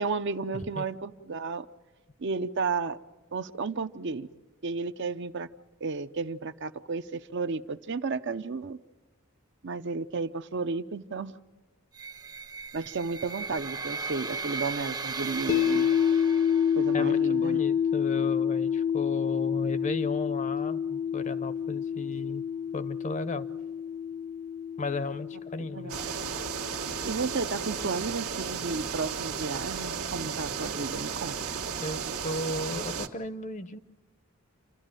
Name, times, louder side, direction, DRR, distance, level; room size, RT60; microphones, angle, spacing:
voice 1, 0.0-1.7 2.2-3.0 3.3-4.3 4.6-5.5 5.8-8.8 9.6-11.3 12.7-15.9 16.8-17.6 25.7-26.0 27.0-31.5 31.7-31.8, right 4 dB, 55° right, 10 dB, 0.7 m, -33 dB
sound 1, 11.9-17.0, right 4 dB, 20° right, 0.7 m, -37 dB
sound 2, 15.5-27.6, left 8 dB, 65° left, 1.1 m, -28 dB
voice 2, 16.9-22.4 22.7-23.5 24.8-26.0 31.8-33.8, left 2 dB, 35° left, 14 dB, 0.7 m, -35 dB
sound 3, 25.9-33.1, right 6 dB, 85° right, 1.5 m, -34 dB
29.0 x 12.5 x 9.0 m, 1.3 s
head